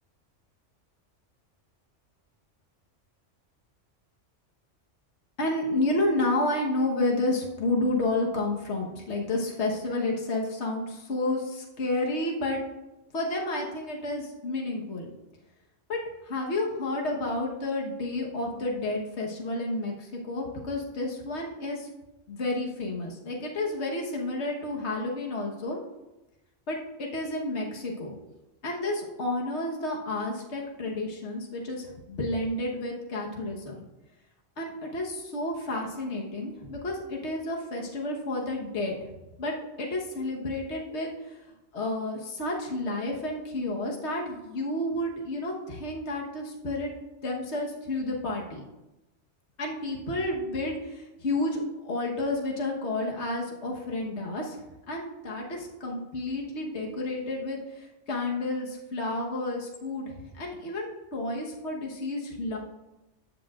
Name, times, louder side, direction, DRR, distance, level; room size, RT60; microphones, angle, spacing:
voice 1, 5.4-12.6 13.1-15.1 15.9-16.0 16.2-21.9 22.3-25.8 26.7-28.1 28.6-33.8 34.6-39.0 39.4-39.5 39.8-41.4 41.7-46.9 47.2-48.6 49.6-54.6 54.9-62.6, left 2 dB, 65° left, -1 dB, 1.6 m, -31 dB
13.5 x 8.6 x 2.5 m, 1.0 s
omnidirectional pair, 1.2 m